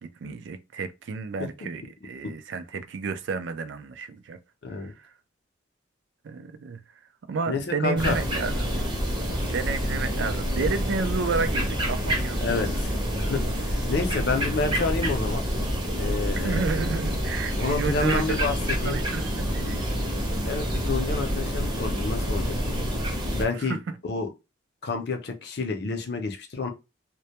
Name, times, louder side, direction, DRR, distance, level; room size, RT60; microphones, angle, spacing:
voice 1, 0.0-4.4 4.8-5.1 6.2-6.8 7.3-8.9 9.5-12.5 16.3-18.2 18.8-20.0 23.5-24.0, right 4 dB, 65° right, 0.3 m, -31 dB
voice 2, 4.6-4.9 7.5-8.2 12.4-15.4 16.0-16.6 17.6-19.0 20.4-22.5 23.3-23.8 24.0-24.3 24.8-26.7, left 3 dB, 55° left, 0.5 m, -29 dB
sound 1, 8.0-23.4, equal, 25° right, 0.6 m, -27 dB
2.1 x 2.1 x 2.8 m
head